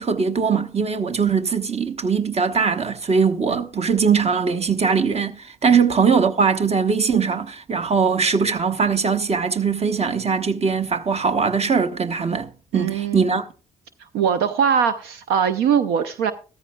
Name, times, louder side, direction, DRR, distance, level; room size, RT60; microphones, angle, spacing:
voice 1, 0.0-13.5, right 5 dB, 40° right, 1.1 m, -21 dB
voice 2, 12.7-13.4 14.1-16.3, right 7 dB, 80° right, 0.6 m, -21 dB
14.0 x 14.0 x 2.3 m
hypercardioid pair, 45°, 17 cm